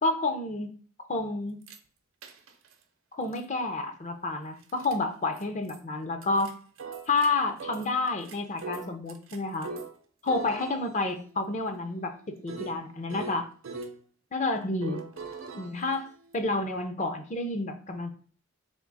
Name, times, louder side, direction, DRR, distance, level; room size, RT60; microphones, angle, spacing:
voice 1, 0.0-0.7 1.1-1.6 3.1-6.5 7.1-9.7 10.2-13.5 14.3-15.1 15.6-16.1 16.3-18.1, left 3 dB, 35° left, 6 dB, 0.5 m, -30 dB
sound 1, 1.6-1.8 2.2-2.7 3.3-3.4 4.6-5.0 5.4-5.5 5.7-5.8 6.2-7.3 7.6-9.9 10.3-14.0 14.8-16.6, right 3 dB, 75° right, 0.6 m, -42 dB
3.6 x 2.8 x 3.9 m, 0.44 s
head